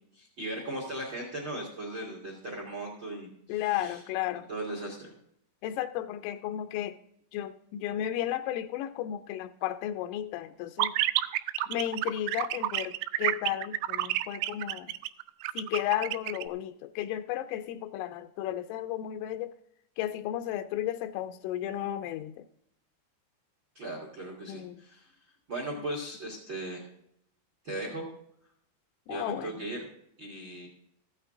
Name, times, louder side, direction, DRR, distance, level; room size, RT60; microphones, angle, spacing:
voice 1, 0.1-4.0 4.5-5.1 23.7-25.1 25.5-26.9 27.6-28.0 29.1-29.8 30.2-30.7, right 1 dB, 60° right, 0 dB, 1.2 m, -38 dB
voice 2, 3.5-4.5 5.6-7.0 7.3-10.9 11.7-14.9 15.5-19.5 20.0-22.5 24.5-24.8 25.8-25.9 29.1-29.6, left 12 dB, 85° left, 9 dB, 3.1 m, -33 dB
sound 1, 10.8-16.4, right 16 dB, 90° right, 3.1 m, -29 dB
14.5 x 8.9 x 3.7 m, 0.72 s
omnidirectional pair, 5.6 m